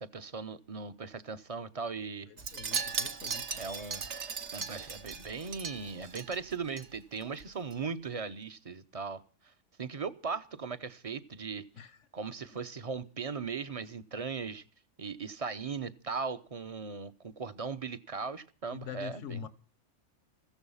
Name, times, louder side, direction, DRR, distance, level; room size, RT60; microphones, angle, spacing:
voice 1, 0.0-2.3 3.6-4.0 4.5-9.5 9.8-11.7 12.1-14.6 15.0-19.5, right 5 dB, 35° right, 0.8 m, -38 dB
voice 2, 2.3-3.5 11.8-12.0 18.7-19.5, left 8 dB, 80° left, 1.3 m, -43 dB
Wind chime, 2.4-6.9 7.2-7.4 7.7-7.8, right 5 dB, 65° right, 1.5 m, -38 dB
15.0 x 14.0 x 5.6 m
omnidirectional pair, 1.3 m